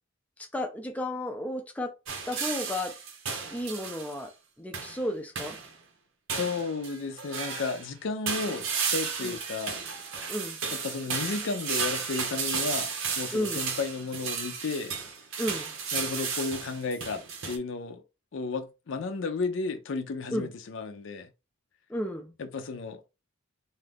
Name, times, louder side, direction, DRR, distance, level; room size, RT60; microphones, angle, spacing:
voice 1, 0.5-1.9 2.3-3.0 3.5-4.3 4.6-5.6 9.2-9.4 10.3-10.6 13.3-13.7 15.4-15.7 20.3-20.5 21.9-22.3, left 1 dB, 5° left, 0.3 m, -33 dB
sound 1, 2.1-4.2 4.7-5.1 5.4-5.7 6.3-7.9 8.3-17.6, right 6 dB, 85° right, 0.7 m, -33 dB
voice 2, 6.3-9.8 10.7-14.9 15.9-18.0 18.3-21.3 22.4-23.0, left 4 dB, 70° left, 0.5 m, -33 dB
2.6 x 2.3 x 3.4 m
head